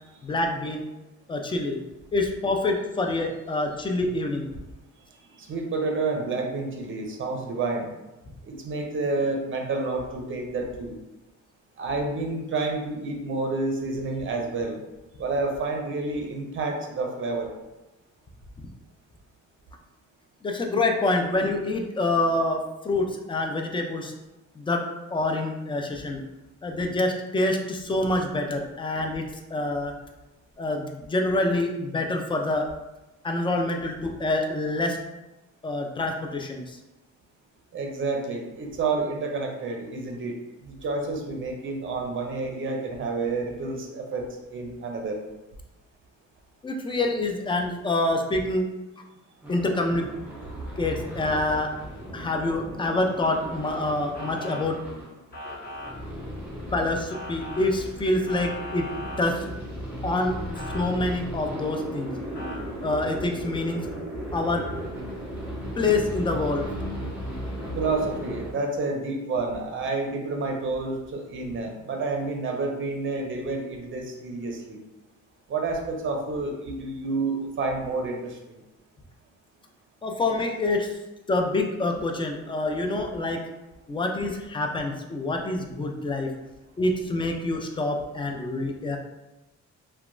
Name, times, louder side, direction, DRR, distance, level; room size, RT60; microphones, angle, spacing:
voice 1, 0.2-0.8 1.3-1.8 2.1-4.5 18.6-18.7 20.4-24.1 24.6-24.8 25.1-26.2 26.6-29.9 30.6-32.7 33.2-35.0 35.6-36.8 46.6-48.7 49.5-50.1 50.8-51.7 52.1-54.8 56.7-58.9 59.2-59.5 60.0-60.4 60.7-62.1 62.8-63.9 64.3-64.7 65.8-66.6 80.0-80.9 81.3-83.4 83.9-86.3 86.8-89.0, left 2 dB, 15° left, 3 dB, 0.4 m, -26 dB
voice 2, 5.4-7.9 8.4-11.0 11.8-14.8 15.2-17.5 37.7-40.3 40.6-44.2 44.5-45.2 67.7-74.8 75.5-78.6, right 3 dB, 40° right, 2 dB, 0.6 m, -29 dB
sound 1, 49.4-68.5, equal, 5° right, 0.8 m, -36 dB
Motor vehicle (road) / Siren, 54.1-54.6 55.3-55.9 57.1-57.6 58.3-59.2 60.5-60.8 62.3-62.6, left 1 dB, 35° left, 0.9 m, -38 dB
2.8 x 2.2 x 2.5 m, 0.98 s
cardioid pair, 90°, 30 cm